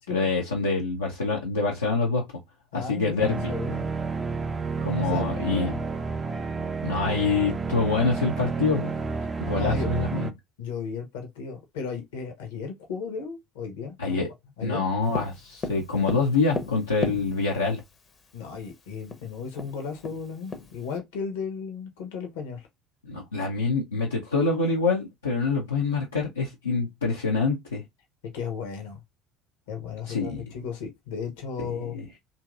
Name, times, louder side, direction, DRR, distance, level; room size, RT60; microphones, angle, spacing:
voice 1, 0.1-2.2 2.7-3.5 4.8-5.7 6.8-8.9 9.4-10.3 14.0-14.3 14.6-17.8 23.0-27.8 30.1-30.4 31.8-32.1, left 4 dB, 85° left, 0.6 m, -26 dB
voice 2, 2.7-3.9 4.9-5.8 9.5-9.9 10.6-14.2 14.6-14.9 18.3-22.7 28.3-29.0 29.7-32.0, left 6 dB, 70° left, 0.9 m, -35 dB
sound 1, 3.2-10.3, right 4 dB, 25° right, 0.4 m, -30 dB
Tap, 15.1-17.7 18.7-18.8 19.1-19.2 19.6-21.0, left 3 dB, 35° left, 0.7 m, -34 dB
2.9 x 2.7 x 2.4 m
figure-of-eight pair, 65°, 0 cm